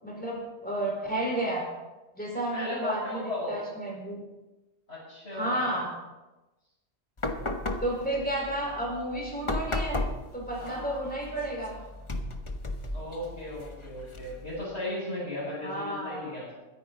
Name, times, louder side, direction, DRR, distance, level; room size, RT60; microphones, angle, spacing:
voice 1, 0.0-1.7 2.2-4.2 5.3-5.9 7.8-10.0 10.3-11.8 15.6-16.4, right 1 dB, 10° left, -2 dB, 4.5 m, -32 dB
voice 2, 2.5-3.6 4.9-5.8 10.6-11.0 12.9-16.6, left 1 dB, 80° left, -10 dB, 6.6 m, -36 dB
sound 1, 7.2-14.6, left 2 dB, 30° left, 1.1 m, -35 dB
22.0 x 10.0 x 4.0 m, 1.1 s
omnidirectional pair, 1.1 m